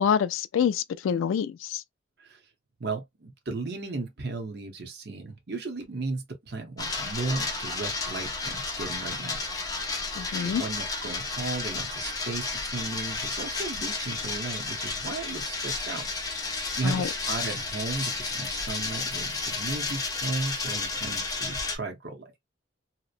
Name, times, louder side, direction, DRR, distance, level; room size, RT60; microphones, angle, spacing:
voice 1, 0.0-1.8 10.2-10.6 16.8-17.1, left 7 dB, 85° left, 0.3 m, -26 dB
voice 2, 2.8-9.4 9.7-9.8 10.4-16.1 16.4-22.4, right 3 dB, 55° right, 0.8 m, -35 dB
sound 1, 6.8-21.8, left 3 dB, 20° left, 0.5 m, -32 dB
2.8 x 2.1 x 2.4 m
head